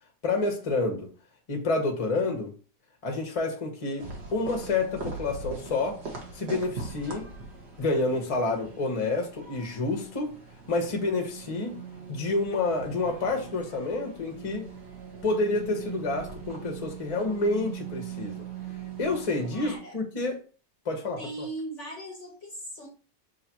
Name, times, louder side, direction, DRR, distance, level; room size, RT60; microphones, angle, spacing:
voice 1, 0.2-1.1 1.5-2.5 3.0-6.0 6.3-7.3 7.8-10.3 10.7-11.8 12.1-14.7 15.2-18.5 19.0-20.4 20.8-21.2, left 3 dB, 30° left, 0.7 m, -28 dB
sound 1, 4.0-19.8, right 5 dB, 45° right, 1.1 m, -41 dB
voice 2, 19.5-20.0 21.2-22.9, right 1 dB, 55° left, 0.9 m, -38 dB
6.4 x 2.6 x 2.9 m
omnidirectional pair, 1.9 m